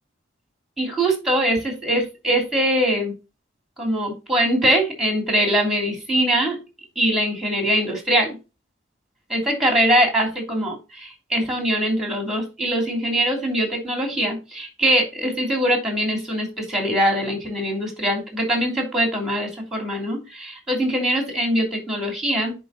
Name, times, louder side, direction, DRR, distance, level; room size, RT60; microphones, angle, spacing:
voice 1, 0.8-3.1 3.8-6.6 6.9-8.3 9.3-22.5, right 1 dB, ahead, 2 dB, 3.1 m, -22 dB
9.8 x 4.5 x 4.0 m, 0.29 s
head